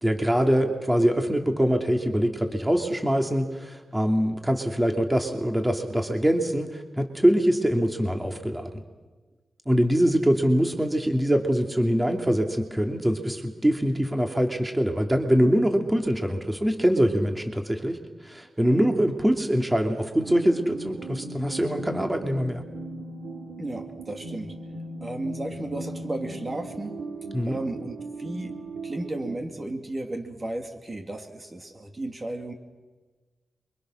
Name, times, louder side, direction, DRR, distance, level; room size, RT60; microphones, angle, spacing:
voice 1, 0.0-8.8 9.7-18.0 18.2-22.6 27.3-27.6, equal, 10° right, 4 dB, 2.7 m, -23 dB
voice 2, 18.6-18.9 23.6-24.6 25.0-27.0 27.4-28.6 28.8-32.5, right 2 dB, 30° right, 4 dB, 2.6 m, -34 dB
sound 1, 20.2-29.4, right 2 dB, 85° right, 4.8 m, -38 dB
28.0 x 24.5 x 6.5 m, 1.3 s
wide cardioid pair, 95°, 0 cm